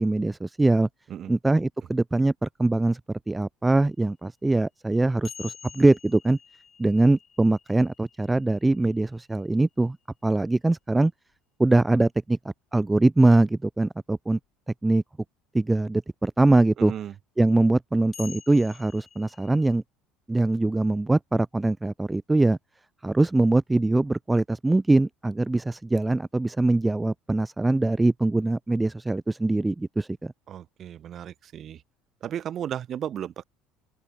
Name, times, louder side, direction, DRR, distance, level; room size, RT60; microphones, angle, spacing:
voice 1, 0.0-0.9 1.3-3.0 3.3-6.4 6.8-10.0 10.2-11.1 11.6-14.4 14.8-15.0 15.5-16.9 17.4-19.8 20.3-22.6 23.0-30.3, right 2 dB, 10° right, 0.5 m, -22 dB
sound 1, 5.3-9.5 11.3-11.4 14.4-14.5 18.1-19.7, left 7 dB, 35° left, 6.0 m, -47 dB
voice 2, 16.8-17.1 30.5-31.8 32.2-33.4, right 10 dB, 45° right, 4.2 m, -34 dB
open air
figure-of-eight pair, 65°, 0 cm